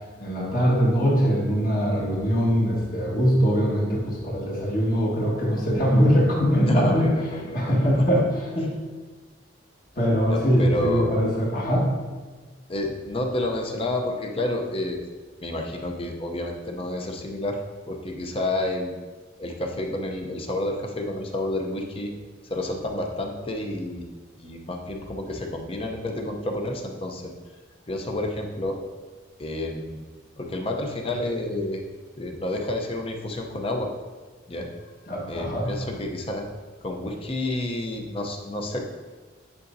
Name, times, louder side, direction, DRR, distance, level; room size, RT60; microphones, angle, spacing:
voice 1, 0.2-8.7 10.0-11.9 35.1-35.7, equal, 45° left, -4 dB, 1.6 m, -22 dB
voice 2, 6.6-8.0 10.3-11.1 12.7-15.0 15.4-17.6 17.9-18.9 19.4-22.1 22.5-24.1 24.4-27.2 27.9-28.8 29.4-30.0 30.4-31.8 32.2-33.9 34.5-34.7 35.3-36.5 36.8-38.8, left 1 dB, 30° left, 2 dB, 0.7 m, -29 dB
9.5 x 5.0 x 2.7 m, 1.4 s
head